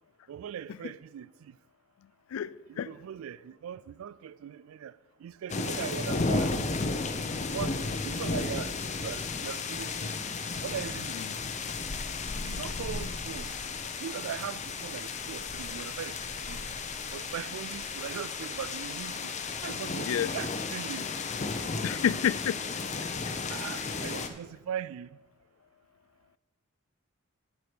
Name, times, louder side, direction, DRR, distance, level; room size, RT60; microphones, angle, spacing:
voice 1, 0.3-1.6 2.7-6.5 7.5-10.2 10.6-11.4 12.4-13.5 14.0-16.8 17.1-19.3 19.6-21.1 23.5-25.2, right 9 dB, 85° right, 0.3 m, -40 dB
voice 2, 2.3-2.9 12.3-13.1 20.1-20.3 21.8-22.6, left 9 dB, 85° left, 0.3 m, -30 dB
sound 1, 5.5-24.3, left 4 dB, 35° left, 0.6 m, -34 dB
7.7 x 6.8 x 6.0 m
head